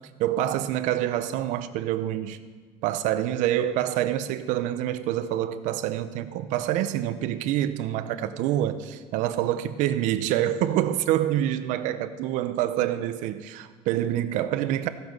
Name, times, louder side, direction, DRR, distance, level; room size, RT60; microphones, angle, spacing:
voice 1, 0.2-2.4 2.8-14.9, right 12 dB, 80° right, 0.6 m, -26 dB
14.5 x 7.9 x 5.3 m
cardioid pair, 155°, 13 cm